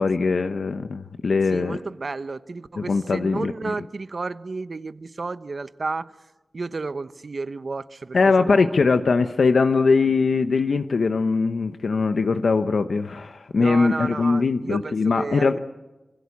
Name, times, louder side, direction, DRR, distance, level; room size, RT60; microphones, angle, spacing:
voice 1, 0.0-1.8 2.8-3.7 8.1-15.6, left 4 dB, 75° left, 0.9 m, -21 dB
voice 2, 1.5-6.1 6.5-8.7 13.5-15.6, right 3 dB, 55° right, 1.0 m, -32 dB
26.5 x 24.5 x 8.6 m
wide cardioid pair, 90°, 0 cm